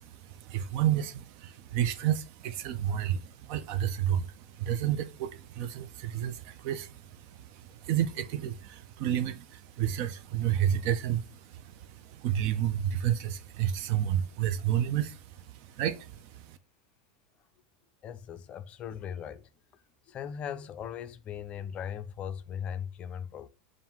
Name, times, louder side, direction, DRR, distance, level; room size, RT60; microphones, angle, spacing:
voice 1, 0.0-16.6, right 10 dB, 55° right, 0.4 m, -31 dB
voice 2, 18.0-19.5 20.1-23.5, left 8 dB, 35° left, 0.4 m, -38 dB
5.4 x 2.5 x 2.9 m
supercardioid pair, 120°, 4 cm